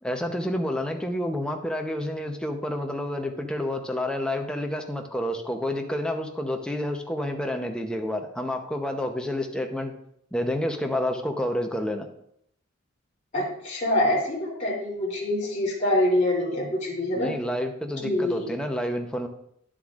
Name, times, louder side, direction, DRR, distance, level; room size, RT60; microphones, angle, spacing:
voice 1, 0.0-9.9 10.3-12.1 17.1-19.3, left 1 dB, 5° left, 3 dB, 0.7 m, -29 dB
voice 2, 13.3-17.3 18.0-18.5, left 1 dB, 35° left, -5 dB, 2.9 m, -25 dB
10.5 x 7.5 x 2.5 m, 0.73 s
head